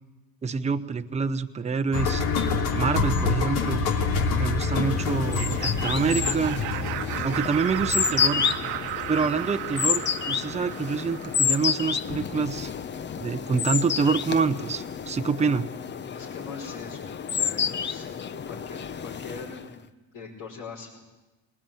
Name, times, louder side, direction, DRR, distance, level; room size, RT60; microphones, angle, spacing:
voice 1, 0.4-2.2 2.7-3.8 4.4-6.6 7.2-8.5 9.1-12.7 13.2-15.7, right 5 dB, 20° right, 9 dB, 0.8 m, -26 dB
sound 1, 1.9-9.9 10.2-10.3, left 4 dB, 85° left, 2.9 m, -27 dB
sound 2, 4.8-19.7, left 7 dB, 30° left, 0.8 m, -30 dB
Laughter, 5.2-12.0, right 14 dB, 90° right, 1.3 m, -35 dB
voice 2, 16.1-18.1 18.5-19.8 20.1-21.0, left 4 dB, 60° left, -6 dB, 5.4 m, -41 dB
21.5 x 19.0 x 9.1 m, 1.1 s
cardioid pair, 115°, 37 cm